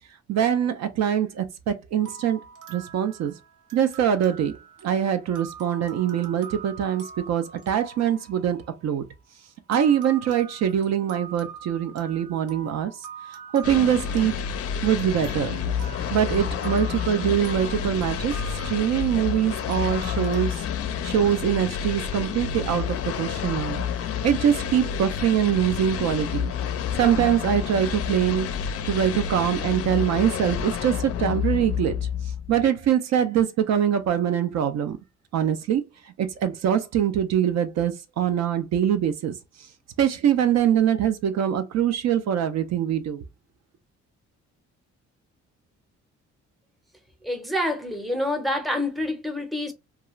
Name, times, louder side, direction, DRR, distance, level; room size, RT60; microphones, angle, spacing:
voice 1, 0.3-2.4 2.7-3.3 3.7-4.5 4.8-9.0 9.7-12.9 13.3-14.4 14.8-15.6 16.1-18.3 18.6-20.6 21.0-23.8 24.2-26.5 27.0-28.5 28.8-32.0 32.5-35.0 35.3-39.7 40.0-43.2, right 9 dB, 60° right, 0.4 m, -23 dB
sound 1, 2.0-9.1 9.7-20.4, right 6 dB, 85° right, 0.9 m, -44 dB
sound 2, 13.6-32.6, left 8 dB, 50° left, 0.4 m, -29 dB
voice 2, 47.2-49.7, left 1 dB, ahead, 0.6 m, -27 dB
2.3 x 2.3 x 2.9 m
cardioid pair, 90°, 30 cm